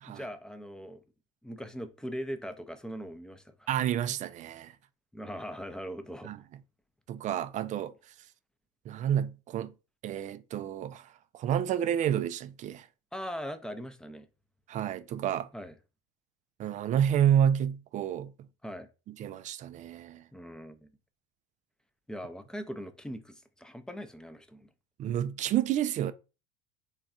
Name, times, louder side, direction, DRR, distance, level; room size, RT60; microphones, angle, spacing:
voice 1, 0.0-1.0 1.4-3.7 5.1-6.3 13.1-14.3 15.5-15.7 18.6-18.9 20.3-20.9 22.1-24.7, equal, 5° left, 0.6 m, -40 dB
voice 2, 3.7-4.7 6.2-6.4 7.1-7.9 8.9-9.7 10.0-12.9 14.7-15.5 16.6-18.3 19.2-20.2 25.0-26.1, right 10 dB, 40° right, 0.5 m, -29 dB
3.4 x 2.4 x 4.1 m
hypercardioid pair, 70°, 19 cm